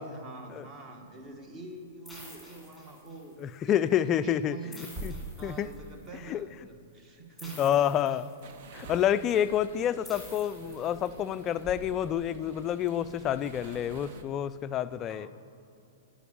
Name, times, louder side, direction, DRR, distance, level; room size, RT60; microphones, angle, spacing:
voice 1, 0.0-8.1 14.9-15.3, right 3 dB, 20° right, 4 dB, 1.2 m, -46 dB
sound 1, 2.0-3.4 4.7-6.1 7.4-8.7 10.0-11.4, left 1 dB, ahead, 2.7 m, -50 dB
sound 2, 3.3-14.1, right 1 dB, 40° right, 2.6 m, -50 dB
voice 2, 3.4-5.1 5.4-5.7 6.3-6.5 7.6-8.3 8.7-15.3, left 10 dB, 25° left, 13 dB, 0.3 m, -28 dB
sound 3, 8.4-14.2, right 5 dB, 55° right, 0.7 m, -49 dB
11.0 x 5.3 x 8.6 m, 2.5 s
hypercardioid pair, 145°, 0 cm